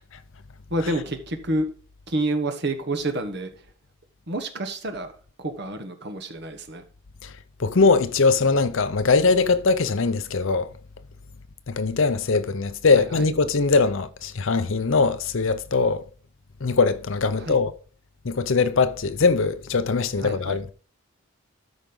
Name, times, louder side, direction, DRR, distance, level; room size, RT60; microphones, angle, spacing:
voice 1, 0.7-1.7 2.1-3.7 4.3-6.8 12.9-13.3 17.3-17.6 20.2-20.6, right 1 dB, 50° right, 1.2 m, -29 dB
voice 2, 7.6-10.7 11.7-16.0 16.6-17.7 18.2-20.6, left 4 dB, 60° left, 0.6 m, -21 dB
13.0 x 5.2 x 3.8 m
head